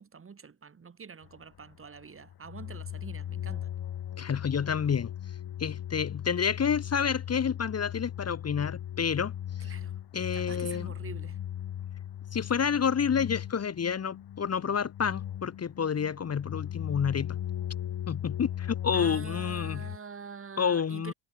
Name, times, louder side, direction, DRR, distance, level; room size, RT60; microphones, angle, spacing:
voice 1, 0.0-3.7 9.6-10.0 10.3-11.4 18.9-21.1, right 6 dB, 30° right, 3.5 m, -45 dB
sound 1, 1.2-20.0, left 11 dB, 55° left, 3.5 m, -38 dB
voice 2, 4.2-5.1 5.6-9.3 10.1-10.9 12.3-17.4 18.1-19.8 20.6-21.1, left 7 dB, 35° left, 1.8 m, -29 dB
cardioid pair, 170°, 45 cm